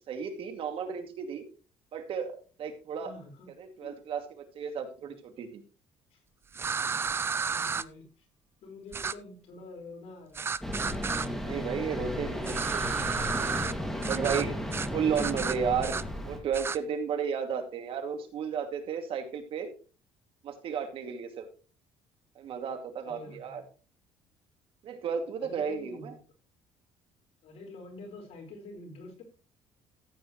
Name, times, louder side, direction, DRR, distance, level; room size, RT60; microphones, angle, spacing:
voice 1, 0.1-1.5 1.9-3.1 3.6-5.6 11.4-13.0 14.1-14.5 14.9-16.0 16.2-19.7 20.4-21.5 22.4-23.6 24.8-26.1, right 7 dB, 55° right, 2.4 m, -33 dB
voice 2, 3.0-3.5 3.8-4.0 6.1-6.2 7.5-8.3 8.6-10.5 23.0-23.7 25.4-26.2 27.4-29.2, left 2 dB, 65° left, 4.9 m, -46 dB
sound 1, 6.5-7.8 8.9-9.1 10.4-11.3 12.4-13.7 14.0-14.4 14.7-14.9 15.1-16.0 16.5-16.8, right 5 dB, 20° right, 0.4 m, -32 dB
sound 2, 10.6-16.4, left 1 dB, 5° left, 2.2 m, -34 dB
14.5 x 8.8 x 3.1 m
cardioid pair, 130°, 11 cm